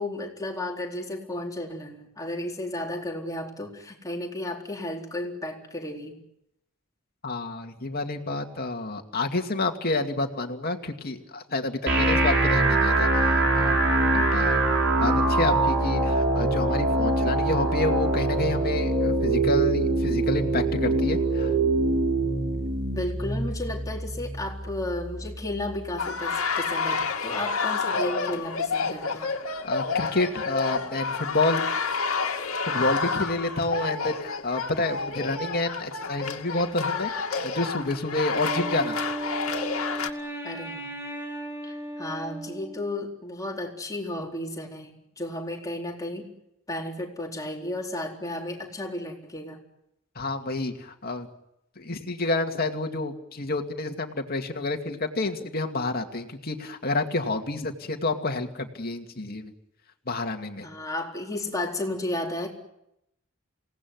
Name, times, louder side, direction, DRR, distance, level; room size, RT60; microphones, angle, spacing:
voice 1, 0.0-6.2 22.9-29.3 40.4-40.9 41.6-46.3 46.7-49.6 60.6-62.5, left 1 dB, 15° left, 0 dB, 4.1 m, -33 dB
voice 2, 7.2-13.8 14.1-14.6 15.0-21.5 29.6-31.6 32.7-39.0 50.2-51.3 51.8-59.5 60.1-60.7, left 2 dB, 45° left, 4 dB, 2.4 m, -29 dB
sound 1, 11.9-25.8, right 2 dB, 55° right, 6.3 m, -24 dB
sound 2, 26.0-40.1, left 4 dB, 85° left, 2.3 m, -29 dB
Wind instrument woodwind instrument, 38.3-43.0, right 1 dB, 10° right, 5.9 m, -35 dB
28.5 x 18.0 x 9.5 m, 0.84 s
head